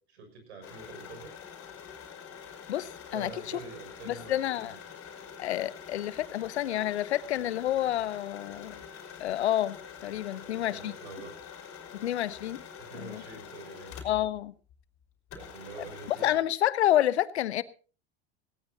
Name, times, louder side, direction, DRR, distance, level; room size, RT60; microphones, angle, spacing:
voice 1, 0.1-1.3 3.1-4.8 10.3-11.3 12.8-14.0 15.3-16.4, right 4 dB, 85° right, 6.5 m, -46 dB
sound 1, 0.6-14.4 14.7-14.8 15.3-16.3, left 7 dB, 45° left, 4.8 m, -46 dB
voice 2, 2.7-3.3 4.1-4.8 5.4-8.8 9.2-9.8 10.0-10.9 11.9-12.6 12.9-13.2 14.0-14.5 16.1-17.6, left 12 dB, 85° left, 0.9 m, -29 dB
18.5 x 18.0 x 2.9 m
hypercardioid pair, 90°, 32 cm